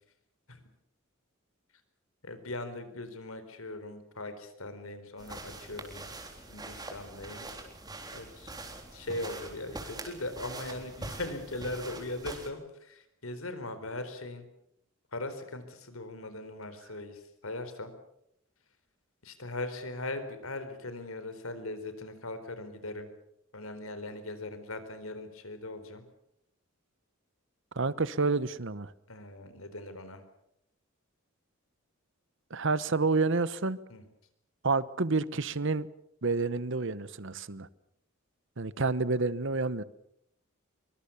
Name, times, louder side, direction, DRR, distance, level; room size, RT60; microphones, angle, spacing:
voice 1, 2.2-6.2 6.5-7.5 8.1-14.5 15.1-17.9 19.2-23.1 23.5-26.0 29.1-30.2 33.9-34.0, left 2 dB, 85° left, 4.2 m, -40 dB
sound 1, 5.2-12.5, right 2 dB, 20° right, 3.8 m, -44 dB
voice 2, 27.8-28.9 32.5-33.8 34.6-35.9 36.2-37.7 38.6-39.8, right 3 dB, 60° right, 1.0 m, -29 dB
24.0 x 23.5 x 7.1 m
head